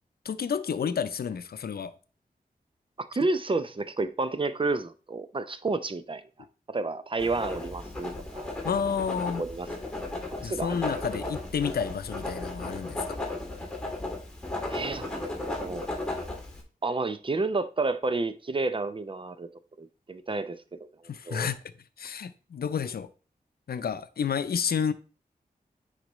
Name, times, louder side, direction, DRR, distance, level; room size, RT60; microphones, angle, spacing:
voice 1, 0.2-1.9 8.6-9.4 10.4-13.2 21.1-21.6 22.0-23.1 23.7-24.9, left 7 dB, 85° left, 0.5 m, -30 dB
voice 2, 3.0-6.2 6.7-8.5 9.3-9.7 10.4-10.8 14.7-15.1 15.5-15.9 16.8-19.5 19.8-20.8 21.3-21.5, right 3 dB, 35° right, 0.6 m, -30 dB
Writing, 7.2-16.6, left 2 dB, 5° left, 2.1 m, -35 dB
9.9 x 4.1 x 3.1 m
wide cardioid pair, 85°, 16 cm